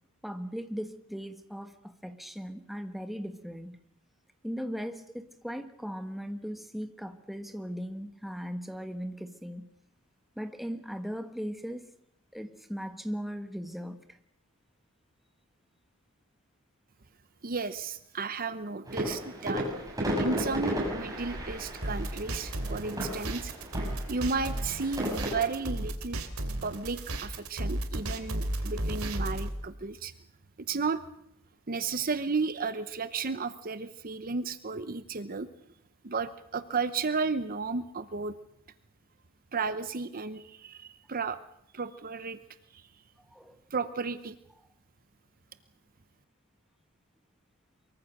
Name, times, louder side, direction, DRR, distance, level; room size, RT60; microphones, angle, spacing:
voice 1, 0.2-3.8 4.4-9.7 10.4-11.9 12.3-14.2 43.3-43.6, equal, ahead, 1.4 m, -38 dB
voice 2, 17.4-19.7 20.1-23.5 24.1-26.2 26.6-30.1 30.7-31.0 31.7-35.5 36.0-38.3 39.5-41.4 41.7-42.4 42.7-42.8 43.7-44.4, right 4 dB, 40° right, 0.8 m, -33 dB
sound 1, 18.8-25.5, equal, 15° right, 7.0 m, -34 dB
sound 2, 21.8-29.5, right 1 dB, 70° right, 3.0 m, -34 dB
23.5 x 23.5 x 6.6 m
head